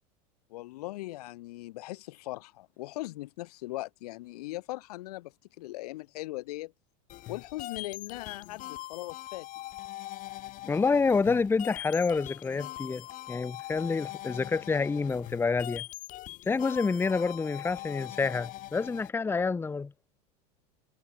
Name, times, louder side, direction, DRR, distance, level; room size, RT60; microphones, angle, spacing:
voice 1, 0.5-6.7 7.3-9.5, left 18 dB, 80° left, 5.6 m, -39 dB
sound 1, 7.1-19.1, left 16 dB, 45° left, 6.0 m, -42 dB
voice 2, 10.6-15.8 16.5-19.9, left 4 dB, 10° left, 1.3 m, -28 dB
supercardioid pair, 145°, 20 cm